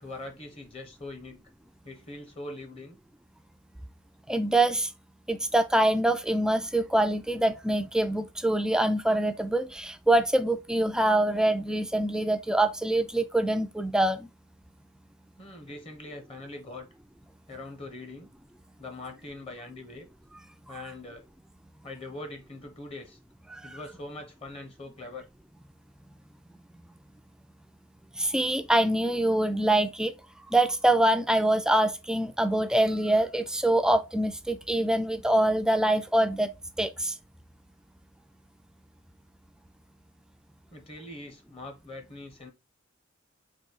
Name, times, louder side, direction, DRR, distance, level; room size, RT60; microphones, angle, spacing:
voice 1, 0.0-1.4 1.8-3.0 15.4-16.9 17.5-18.3 18.8-20.1 20.7-21.3 21.8-23.2 23.6-25.3 40.7-42.5, left 2 dB, 30° left, 0.9 m, -42 dB
voice 2, 4.3-4.9 5.3-14.2 28.2-30.1 30.5-36.5 36.8-37.1, right 1 dB, 5° right, 0.4 m, -24 dB
4.1 x 2.7 x 4.7 m
head